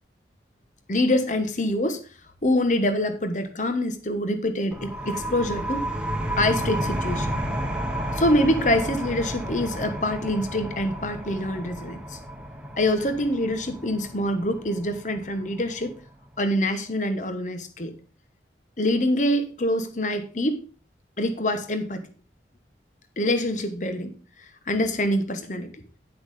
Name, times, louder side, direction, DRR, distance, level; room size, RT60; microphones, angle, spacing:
voice 1, 0.9-2.0 2.4-5.9 6.4-7.3 8.2-12.2 12.8-15.9 16.4-17.9 18.8-20.6 21.2-22.0 23.2-24.1 24.7-25.7, left 1 dB, 45° left, 8 dB, 1.2 m, -25 dB
sound 1, 4.7-16.1, right 1 dB, 5° right, 1.2 m, -32 dB
10.5 x 6.2 x 4.9 m, 0.35 s
head